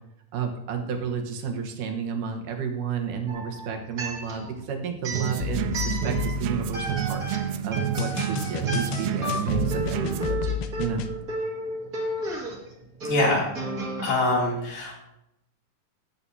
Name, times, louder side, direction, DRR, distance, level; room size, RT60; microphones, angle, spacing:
voice 1, 0.3-7.2 7.6-11.0, right 6 dB, 70° right, 3 dB, 2.7 m, -31 dB
sound 1, 3.3-4.6 5.0-6.4 6.7-14.1, right 1 dB, 30° right, 2.0 m, -33 dB
sound 2, 5.1-10.3, right 10 dB, 85° right, 1.5 m, -29 dB
sound 3, 5.4-7.2 8.0-11.1, left 11 dB, 85° left, 2.4 m, -32 dB
voice 2, 13.0-13.5 14.0-14.9, left 2 dB, 70° left, -4 dB, 4.4 m, -24 dB
17.0 x 8.7 x 2.8 m, 0.85 s
omnidirectional pair, 3.9 m